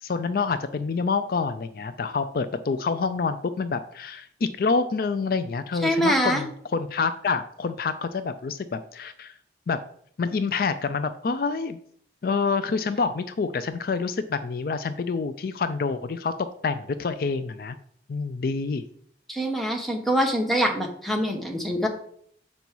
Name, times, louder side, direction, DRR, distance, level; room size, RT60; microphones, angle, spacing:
voice 1, 0.0-9.3 9.7-9.8 10.2-11.8 12.2-16.3 16.6-17.8 18.1-18.8, left 4 dB, 55° left, 11 dB, 0.4 m, -27 dB
voice 2, 5.8-6.4 19.3-21.9, equal, ahead, 1 dB, 1.1 m, -24 dB
7.0 x 5.3 x 4.6 m, 0.62 s
head